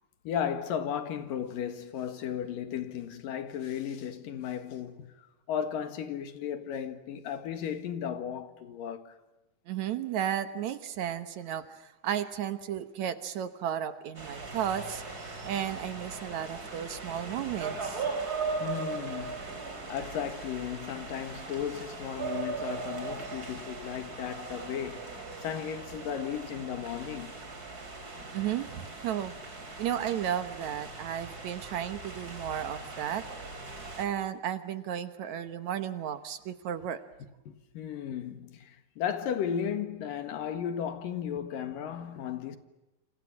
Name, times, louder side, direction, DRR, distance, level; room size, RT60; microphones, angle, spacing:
voice 1, 0.2-5.1 5.5-9.2 18.6-19.6 19.9-27.3 37.5-42.6, left 8 dB, 80° left, 3.4 m, -35 dB
voice 2, 9.7-15.0 15.4-18.1 28.3-29.3 29.8-33.2 34.0-37.0, right 10 dB, 65° right, 2.2 m, -34 dB
sound 1, 14.1-34.0, right 4 dB, 25° right, 3.7 m, -39 dB
28.0 x 27.5 x 7.4 m
omnidirectional pair, 3.9 m